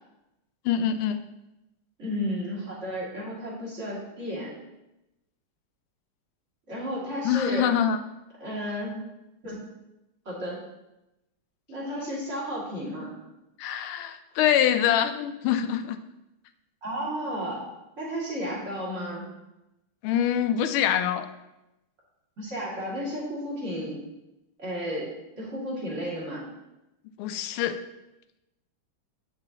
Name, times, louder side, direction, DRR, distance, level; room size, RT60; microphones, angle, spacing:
voice 1, 0.6-1.2 7.2-8.0 13.6-16.0 20.0-21.3 27.2-27.8, left 9 dB, 80° left, 9 dB, 1.4 m, -24 dB
voice 2, 2.0-4.5 6.7-7.7 8.4-9.0 9.4-9.6 10.3-10.6 11.7-13.1 16.8-17.6 18.0-19.3 22.4-24.0 24.6-26.4, equal, 35° right, -6 dB, 2.6 m, -33 dB
8.9 x 6.8 x 2.9 m, 0.94 s
omnidirectional pair, 2.4 m